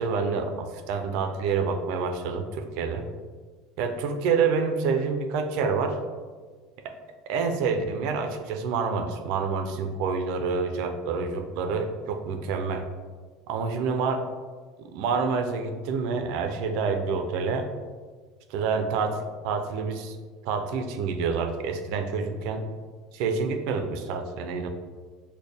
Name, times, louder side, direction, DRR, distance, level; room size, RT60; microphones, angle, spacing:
voice 1, 0.0-3.1 3.8-6.0 6.8-6.9 7.3-12.9 13.5-14.3 14.8-17.7 18.5-20.2 20.4-22.7 23.1-24.7, right 5 dB, 60° right, 6 dB, 0.4 m, -27 dB
4.2 x 2.1 x 3.4 m, 1.5 s
cardioid pair, 160°, 0 cm